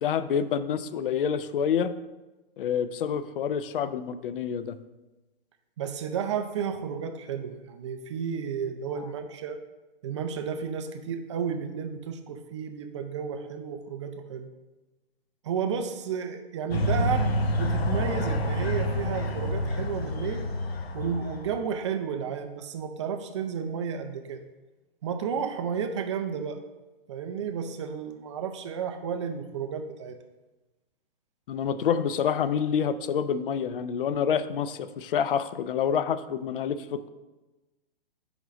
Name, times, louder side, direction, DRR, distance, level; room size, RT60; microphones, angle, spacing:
voice 1, 0.0-1.9 2.6-4.8 9.0-9.1 31.5-37.1, left 7 dB, 60° left, 13 dB, 0.5 m, -27 dB
voice 2, 5.8-9.6 10.0-14.5 15.4-20.5 20.9-24.4 25.0-26.6 27.1-30.2, right 7 dB, 30° right, 7 dB, 0.4 m, -32 dB
sound 1, 16.7-21.6, left 1 dB, 80° left, 0.9 m, -28 dB
5.2 x 4.9 x 5.0 m, 1.1 s
hypercardioid pair, 140°, 30 cm